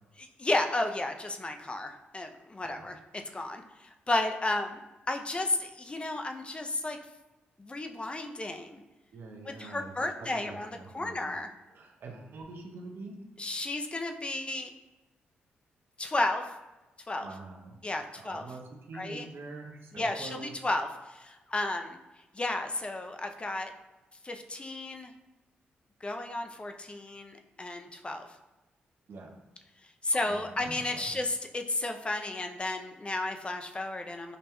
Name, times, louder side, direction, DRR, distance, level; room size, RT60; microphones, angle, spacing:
voice 1, 0.2-3.0 3.3-3.6 4.1-4.8 5.1-7.0 7.6-8.8 9.5-11.5 13.4-14.7 16.0-16.5 17.1-17.3 17.8-18.4 18.9-19.3 19.9-20.3 20.6-22.0 22.3-23.7 24.2-25.1 26.0-28.3 30.0-34.4, left 2 dB, 25° left, 5 dB, 0.4 m, -33 dB
voice 2, 9.1-11.3 11.7-13.2 17.2-17.8 18.1-18.6 18.9-20.5 29.1-29.3 30.1-31.2, right 3 dB, 65° right, 2 dB, 0.7 m, -45 dB
5.1 x 2.8 x 2.2 m, 1.1 s
supercardioid pair, 55°, 4 cm